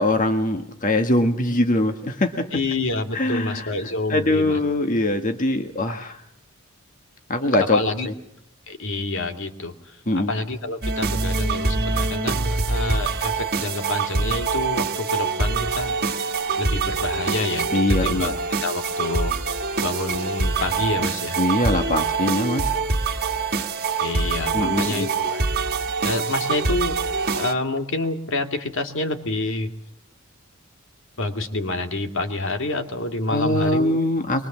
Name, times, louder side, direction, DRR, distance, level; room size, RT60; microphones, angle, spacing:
voice 1, 0.0-2.5 3.1-6.2 7.3-8.1 10.1-10.3 17.7-18.3 21.4-22.7 24.5-25.1 33.3-34.5, left 1 dB, 40° left, 5 dB, 1.5 m, -22 dB
voice 2, 2.5-4.6 5.9-6.0 7.7-8.1 8.7-16.0 16.6-17.7 18.0-19.3 19.8-21.4 24.0-25.4 26.0-27.0 27.4-29.7 31.2-34.0, left 2 dB, 65° left, 6 dB, 2.4 m, -28 dB
sound 1, 10.8-27.5, right 4 dB, 45° right, 1.5 m, -25 dB
23.5 x 23.5 x 7.4 m, 0.72 s
head